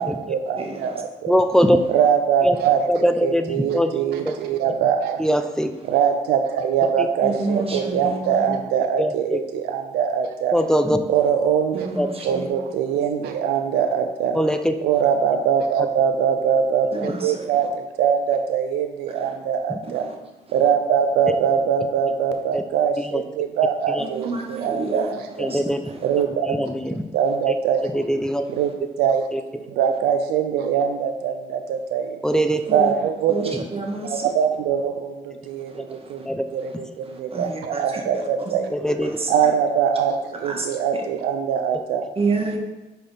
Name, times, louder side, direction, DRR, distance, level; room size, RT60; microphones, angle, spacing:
voice 1, 0.0-1.4 1.9-5.2 5.9-10.6 11.1-11.9 12.2-14.4 14.8-20.0 20.5-25.5 26.0-26.6 27.1-28.0 28.5-29.3 29.6-32.2 32.7-33.5 34.0-36.2 36.5-38.7 39.3-42.1, right 7 dB, 90° right, 6 dB, 0.5 m, -22 dB
voice 2, 0.6-1.0 7.2-8.5 11.7-12.5 16.9-17.5 19.1-19.3 19.8-20.1 24.0-26.2 32.7-32.9 33.3-34.3 35.7-36.1 36.6-36.7 37.0-38.5 39.0-39.5 40.4-40.7 40.9-41.0 42.1-42.6, right 3 dB, 35° right, 1 dB, 1.6 m, -30 dB
voice 3, 1.3-1.8 2.4-2.6 2.9-3.9 4.3-4.4 5.2-5.7 7.0-7.1 9.0-9.4 10.5-11.0 12.0-12.1 14.3-14.7 17.0-17.1 19.7-19.8 22.5-22.6 23.0-23.2 23.9-24.0 25.4-25.8 26.5-26.9 27.8-28.4 29.3-29.4 32.2-32.6 36.3-36.4 38.7-39.2, equal, 5° left, 8 dB, 0.6 m, -21 dB
5.2 x 4.3 x 5.4 m, 1.0 s
supercardioid pair, 60°, 16 cm